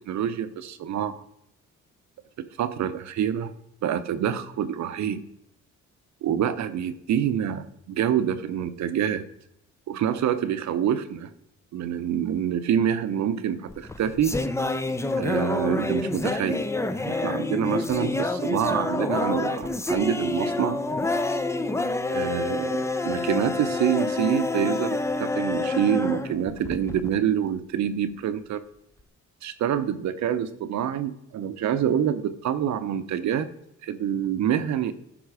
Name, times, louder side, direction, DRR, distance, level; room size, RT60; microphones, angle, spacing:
voice 1, 0.1-1.2 2.6-3.5 3.8-5.2 6.2-9.2 9.9-11.3 11.7-14.4 15.2-16.6 16.9-20.8 22.1-28.6 29.4-33.5 33.8-34.9, right 9 dB, 65° right, 12 dB, 0.7 m, -26 dB
sound 1, 13.7-27.1, left 2 dB, 10° left, 0.5 m, -28 dB
11.0 x 3.7 x 4.8 m, 0.77 s
cardioid pair, 90°, 30 cm